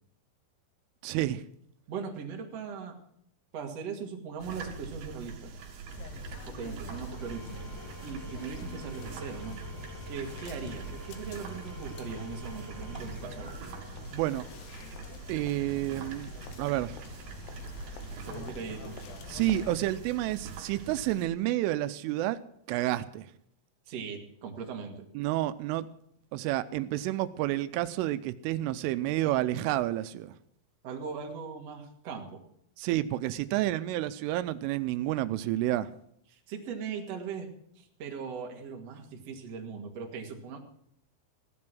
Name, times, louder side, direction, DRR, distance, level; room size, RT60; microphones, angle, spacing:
voice 1, 1.0-1.4 14.1-14.4 15.3-16.3 16.6-17.0 19.3-22.4 22.7-23.3 25.2-25.9 26.3-30.3 32.8-35.9, right 15 dB, 90° right, 13 dB, 3.2 m, -30 dB
voice 2, 1.9-3.0 3.5-5.5 6.4-7.6 8.0-9.6 10.1-13.5 18.3-19.0 23.9-25.1 30.8-32.4 36.3-37.5 37.8-40.6, right 6 dB, 45° right, 2 dB, 2.5 m, -39 dB
sound 1, 4.4-21.3, right 4 dB, 60° right, 3.6 m, -44 dB
sound 2, 5.9-19.9, left 5 dB, 70° left, 3.2 m, -46 dB
Engine / Tools, 7.0-14.4, right 2 dB, 15° right, 0.8 m, -49 dB
16.0 x 11.0 x 6.2 m, 0.69 s
omnidirectional pair, 5.6 m